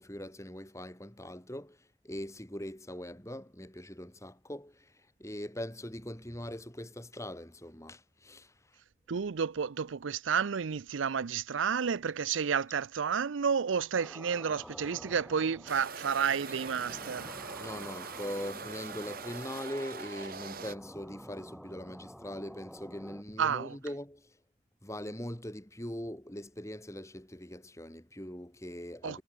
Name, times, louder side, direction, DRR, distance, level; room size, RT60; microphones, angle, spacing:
voice 1, 0.0-8.5 17.6-24.3 24.8-29.2, left 1 dB, 15° left, 3.4 m, -41 dB
voice 2, 9.1-17.3 23.4-23.8 29.0-29.2, right 6 dB, 80° right, 0.5 m, -31 dB
sound 1, 14.0-23.2, equal, ahead, 1.4 m, -49 dB
sound 2, 15.7-20.8, right 5 dB, 50° right, 4.3 m, -43 dB
head